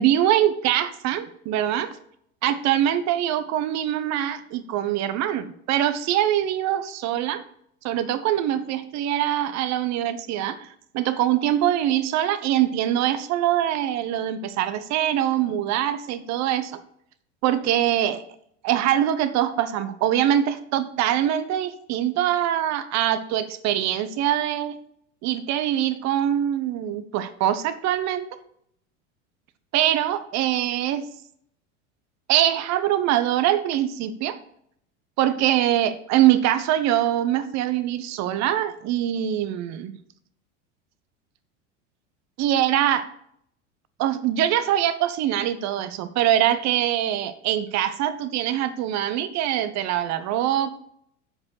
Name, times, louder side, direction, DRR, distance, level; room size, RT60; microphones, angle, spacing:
voice 1, 0.0-1.9 2.4-7.4 7.8-10.7 10.9-16.7 17.4-18.2 18.6-24.8 25.2-28.3 29.7-31.0 32.3-34.4 35.2-40.0 42.4-43.1 44.0-50.8, right 11 dB, 45° right, 13 dB, 1.0 m, -23 dB
7.4 x 5.3 x 6.4 m, 0.70 s
hypercardioid pair, 85°, 36 cm